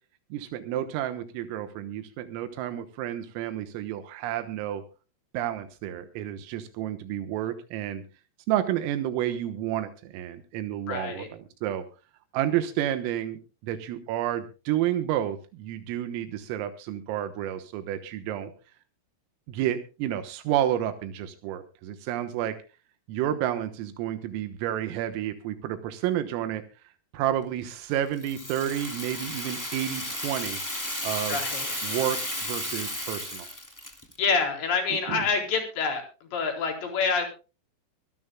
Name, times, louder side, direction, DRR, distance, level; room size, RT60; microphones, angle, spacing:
voice 1, 0.3-4.8 5.3-8.0 8.5-11.3 11.6-11.9 12.3-18.5 19.5-22.6 23.1-26.6 27.1-30.6 31.0-31.4 31.8-33.5 35.1-35.2, right 11 dB, 90° right, 8 dB, 3.8 m, -30 dB
voice 2, 10.9-11.3 31.3-31.7 34.2-37.3, left 5 dB, 60° left, 1 dB, 6.2 m, -27 dB
Rattle (instrument), 28.2-34.2, left 1 dB, 10° left, 1.1 m, -33 dB
24.0 x 13.5 x 2.2 m, 0.33 s
omnidirectional pair, 5.8 m